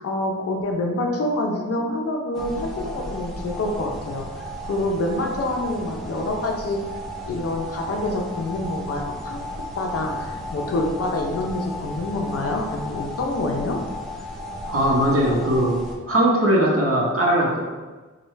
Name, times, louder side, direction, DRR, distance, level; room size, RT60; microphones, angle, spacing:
voice 1, 0.0-4.2 4.7-6.8 7.3-9.4 9.8-13.8, left 2 dB, 50° left, 1 dB, 0.6 m, -26 dB
sound 1, 2.3-16.0, equal, ahead, 0.6 m, -34 dB
voice 2, 14.7-15.8 16.1-17.6, right 1 dB, 45° right, -3 dB, 0.9 m, -19 dB
4.7 x 2.3 x 3.1 m, 1.3 s
wide cardioid pair, 140°, 30 cm